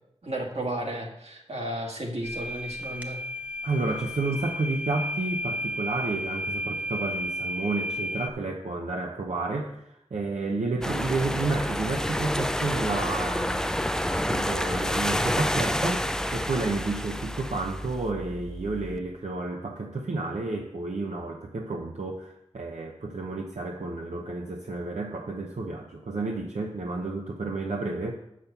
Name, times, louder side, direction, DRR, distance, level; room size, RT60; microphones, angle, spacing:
voice 1, 0.2-3.2, right 1 dB, 65° right, 0 dB, 1.9 m, -33 dB
sound 1, 2.2-8.3, left 1 dB, 15° right, 0.9 m, -33 dB
voice 2, 3.6-28.1, right 3 dB, 85° right, 1 dB, 0.9 m, -31 dB
sound 2, 10.8-19.0, equal, 5° left, 0.5 m, -29 dB
7.2 x 6.3 x 6.8 m, 0.81 s
wide cardioid pair, 70°, 12 cm